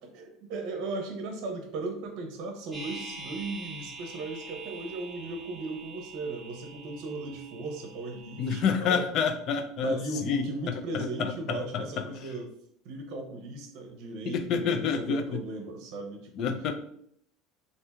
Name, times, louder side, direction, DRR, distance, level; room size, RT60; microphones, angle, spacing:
voice 1, 0.0-9.0 9.8-12.5 12.8-16.5, right 2 dB, 65° right, 4 dB, 0.8 m, -37 dB
sound 1, 2.7-8.6, right 3 dB, ahead, 1.2 m, -45 dB
voice 2, 8.4-10.0 10.2-10.4 10.9-12.0 14.3-15.4 16.4-16.7, left 6 dB, 55° left, 7 dB, 0.4 m, -28 dB
2.7 x 2.6 x 3.4 m, 0.67 s
supercardioid pair, 115°, 0 cm